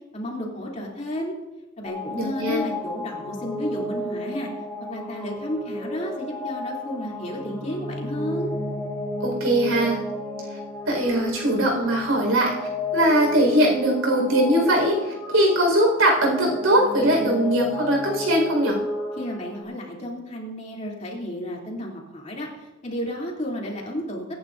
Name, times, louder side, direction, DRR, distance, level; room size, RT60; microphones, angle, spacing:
voice 1, 0.1-1.3 1.8-4.5 4.9-8.5 19.2-24.2, equal, 35° left, -2 dB, 3.0 m, -32 dB
sound 1, 1.8-19.6, left 2 dB, 15° left, 3.1 m, -32 dB
voice 2, 2.1-2.6 9.2-10.0 10.9-12.5 12.9-18.8, right 1 dB, 90° right, 0 dB, 4.9 m, -21 dB
23.5 x 11.0 x 2.6 m, 1.1 s
head